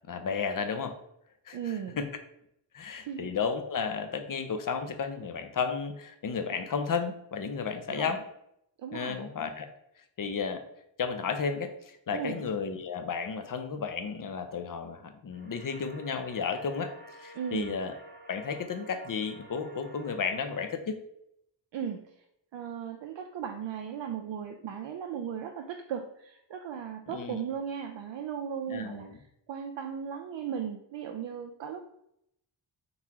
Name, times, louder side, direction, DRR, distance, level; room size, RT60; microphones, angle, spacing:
voice 1, 0.1-1.0 1.5-1.6 2.0-2.1 2.7-8.2 8.9-9.7 10.2-10.6 11.0-16.9 17.2-17.9 18.3-21.0 27.1-27.4 28.7-29.2, left 5 dB, 45° left, 8 dB, 0.7 m, -33 dB
voice 2, 1.5-2.0 3.1-3.3 7.9-8.2 8.8-9.2 12.1-12.5 17.3-17.8 21.7-22.2 22.5-31.9, right 8 dB, 75° right, 4 dB, 0.5 m, -37 dB
sound 1, 15.3-20.7, right 1 dB, 20° right, 0.9 m, -51 dB
4.0 x 2.8 x 4.7 m, 0.76 s
wide cardioid pair, 95°, 45 cm